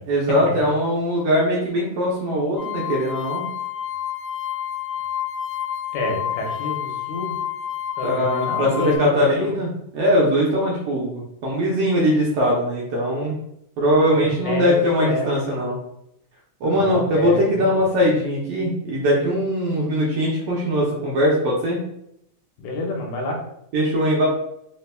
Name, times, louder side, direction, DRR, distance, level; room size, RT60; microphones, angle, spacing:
voice 1, 0.1-3.4 8.0-13.4 13.8-15.8 16.6-21.8 23.7-24.3, equal, 70° right, -4 dB, 1.5 m, -21 dB
sound 1, 2.6-9.0, left 10 dB, 55° left, 1.4 m, -29 dB
voice 2, 5.9-7.3 8.0-9.6 14.0-15.5 16.6-17.8 22.6-23.4, left 2 dB, 80° left, 0 dB, 2.3 m, -28 dB
4.4 x 4.2 x 2.2 m, 0.78 s
omnidirectional pair, 3.5 m